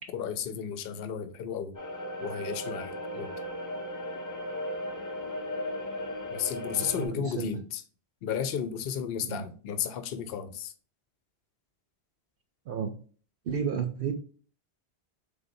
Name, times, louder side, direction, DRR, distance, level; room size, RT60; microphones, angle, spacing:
voice 1, 0.1-1.8 2.2-3.3 6.3-7.8 8.2-10.7, left 8 dB, 65° left, 0.8 m, -33 dB
sound 1, 1.8-7.1, equal, 30° left, 0.4 m, -36 dB
voice 2, 6.7-7.6 9.2-9.5 12.7-12.9 13.5-14.1, right 7 dB, 65° right, 0.8 m, -32 dB
3.9 x 3.6 x 2.6 m
omnidirectional pair, 1.1 m